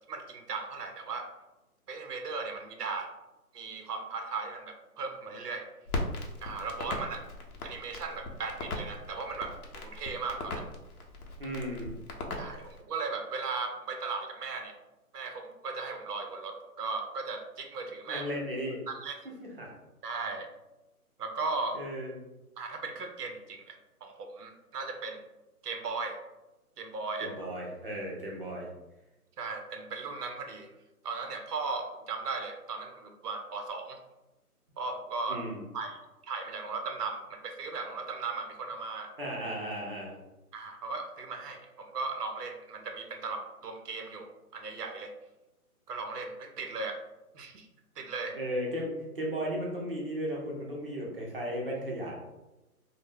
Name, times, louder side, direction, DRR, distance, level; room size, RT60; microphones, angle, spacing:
voice 1, 0.1-1.3 1.9-3.1 3.5-5.7 6.4-7.2 7.6-10.7 12.4-14.7 15.1-18.3 18.9-19.1 20.0-20.5 21.2-21.8 22.6-25.2 25.6-26.2 26.8-27.3 29.4-30.7 31.0-34.0 34.8-35.4 35.7-36.0 36.3-39.1 40.5-45.1 45.9-47.0 47.3-47.7 48.0-48.4, right 4 dB, 85° right, 5 dB, 0.6 m, -37 dB
Crackle, 5.9-12.8, left 2 dB, 70° left, 0.6 m, -39 dB
voice 2, 11.4-11.9 18.1-18.8 19.6-19.7 21.7-22.2 27.2-28.7 35.3-35.6 39.2-40.2 48.3-52.1, equal, 40° right, -2 dB, 0.5 m, -35 dB
2.1 x 2.0 x 3.3 m, 1.0 s
hypercardioid pair, 160°, 46 cm